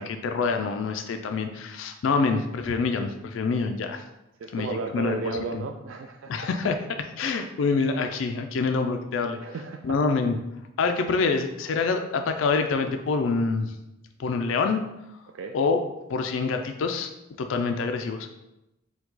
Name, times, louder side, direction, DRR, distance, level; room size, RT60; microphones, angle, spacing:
voice 1, 0.0-4.0 4.5-5.2 5.5-5.7 6.3-9.4 9.8-10.4 10.8-13.7 14.2-14.8 15.5-15.8 16.1-17.1 17.4-18.3, left 4 dB, 70° left, 6 dB, 0.4 m, -26 dB
voice 2, 4.4-6.3 9.4-9.8 15.3-15.6, right 4 dB, 70° right, 4 dB, 0.3 m, -34 dB
4.6 x 2.3 x 3.9 m, 0.90 s
head